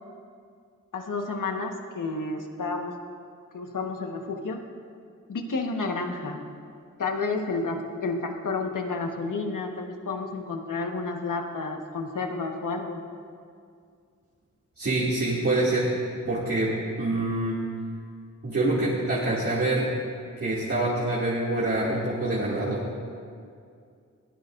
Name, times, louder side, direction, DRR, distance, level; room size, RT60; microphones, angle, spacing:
voice 1, 0.9-3.0 3.5-4.6 5.3-6.4 7.0-13.0, left 3 dB, 85° left, 3 dB, 1.4 m, -31 dB
voice 2, 14.8-15.9 16.2-17.6 18.4-19.9 20.4-22.8, right 2 dB, 45° right, -8 dB, 2.5 m, -26 dB
21.5 x 16.5 x 2.6 m, 2.3 s
wide cardioid pair, 100°, 31 cm